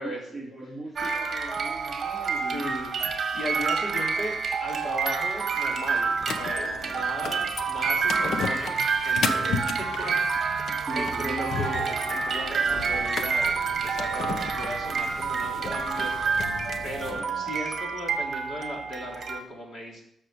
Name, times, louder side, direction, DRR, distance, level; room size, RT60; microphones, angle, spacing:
voice 1, 0.0-2.8 6.8-7.1 10.7-11.4 17.0-17.5, right 1 dB, 5° left, -3 dB, 2.7 m, -40 dB
sound 1, 1.0-19.4, right 5 dB, 35° right, 1.7 m, -28 dB
voice 2, 2.5-3.0 3.3-16.4 16.8-20.0, equal, 40° left, 0 dB, 4.0 m, -37 dB
sound 2, 6.2-17.2, left 5 dB, 55° left, 1.2 m, -35 dB
13.5 x 6.6 x 8.7 m, 0.73 s
wide cardioid pair, 165°, 0 cm